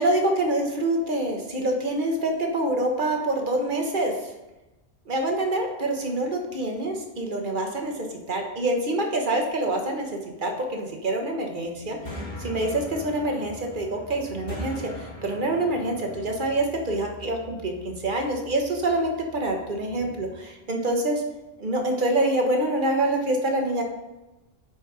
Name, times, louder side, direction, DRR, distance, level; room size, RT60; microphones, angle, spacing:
voice 1, 0.0-4.3 5.1-10.1 10.4-21.2 21.6-23.8, right 1 dB, 45° right, 2 dB, 1.3 m, -26 dB
sound 1, 11.6-20.3, left 1 dB, 40° left, 1.6 m, -41 dB
10.0 x 4.4 x 4.8 m, 1.0 s
omnidirectional pair, 1.2 m